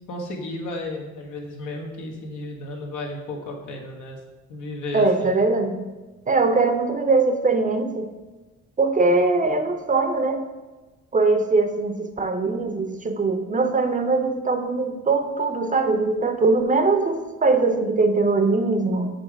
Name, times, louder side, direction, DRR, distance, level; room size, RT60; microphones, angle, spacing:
voice 1, 0.1-4.2 4.5-5.3, left 2 dB, 80° left, 1 dB, 1.2 m, -33 dB
voice 2, 4.9-5.8 6.3-8.1 8.8-10.4 11.1-19.1, right 3 dB, 25° right, 7 dB, 0.5 m, -21 dB
5.6 x 3.8 x 4.5 m, 1.2 s
cardioid pair, 90°, 30 cm